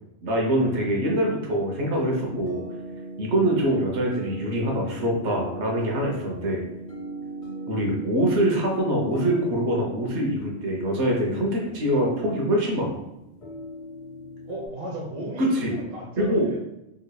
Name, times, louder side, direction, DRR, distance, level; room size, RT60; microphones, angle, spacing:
voice 1, 0.2-2.6 3.2-6.6 7.7-13.0 15.4-15.7 16.2-16.5, right 1 dB, 70° right, -1 dB, 1.0 m, -24 dB
sound 1, 1.5-14.7, right 1 dB, 50° left, 0.4 m, -38 dB
voice 2, 14.5-16.6, right 1 dB, 35° right, -3 dB, 0.8 m, -37 dB
3.8 x 2.9 x 2.2 m, 0.91 s
omnidirectional pair, 1.2 m